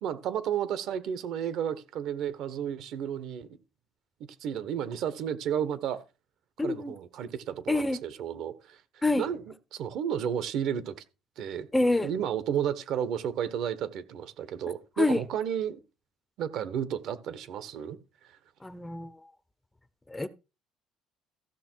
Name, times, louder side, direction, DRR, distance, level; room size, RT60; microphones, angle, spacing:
voice 1, 0.0-3.5 4.4-6.0 6.6-8.8 9.2-10.9 11.4-11.7 12.0-15.8 16.4-18.0 18.2-18.4, right 9 dB, 65° right, 1.2 m, -32 dB
voice 2, 6.6-6.9 7.7-8.0 9.0-9.2 11.7-12.1 15.0-15.2 18.6-19.1 20.1-20.3, left 2 dB, 10° left, 0.6 m, -26 dB
14.5 x 6.6 x 4.6 m
cardioid pair, 150°, 0 cm